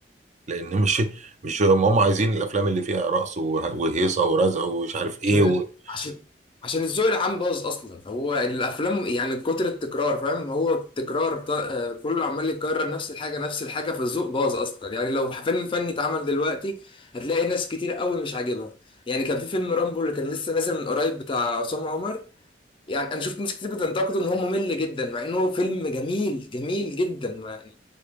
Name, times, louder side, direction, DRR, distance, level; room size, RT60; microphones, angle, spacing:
voice 1, 0.5-5.7, right 2 dB, 40° right, 0.4 m, -22 dB
voice 2, 5.2-5.6 5.9-6.2 6.6-18.7 19.1-22.2 22.9-27.7, left 2 dB, 30° left, 0.4 m, -27 dB
3.8 x 2.2 x 3.3 m
head